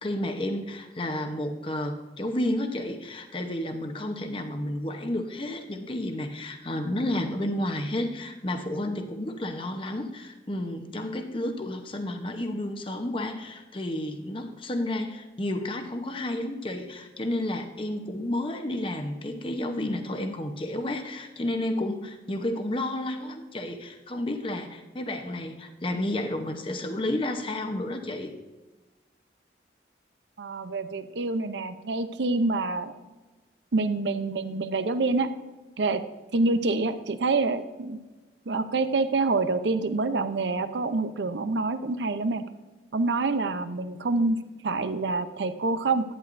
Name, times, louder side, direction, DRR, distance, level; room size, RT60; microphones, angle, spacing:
voice 1, 0.0-28.3, left 1 dB, 30° left, 5 dB, 0.8 m, -31 dB
voice 2, 30.4-32.9 33.7-35.3 35.8-36.0 36.3-38.0 38.5-42.5 42.9-46.0, right 3 dB, 80° right, 11 dB, 0.6 m, -26 dB
11.0 x 10.0 x 2.6 m, 1.2 s
head